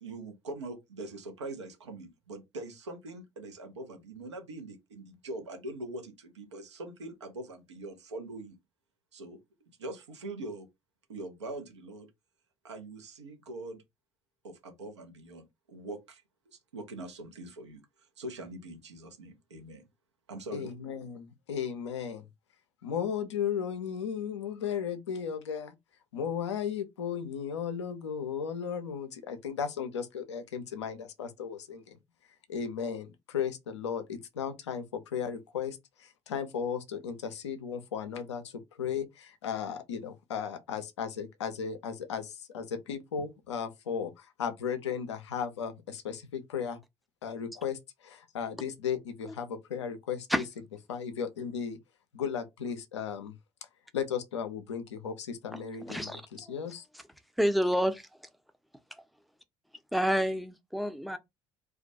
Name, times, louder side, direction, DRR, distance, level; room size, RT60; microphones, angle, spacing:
voice 1, 0.0-8.6 9.1-9.4 9.8-10.7 11.1-12.1 12.6-13.8 14.4-17.8 18.2-19.8 20.3-20.7, right 2 dB, 85° right, 0.6 m, -43 dB
voice 2, 20.5-22.2 22.8-25.7 26.1-32.0 32.5-46.8 47.2-50.3 50.9-51.8 52.1-53.4 53.9-56.8, left 7 dB, 85° left, 0.4 m, -35 dB
voice 3, 55.5-56.2 57.4-58.1 59.9-61.2, equal, ahead, 0.4 m, -29 dB
2.2 x 2.1 x 2.5 m
figure-of-eight pair, 55°, 14 cm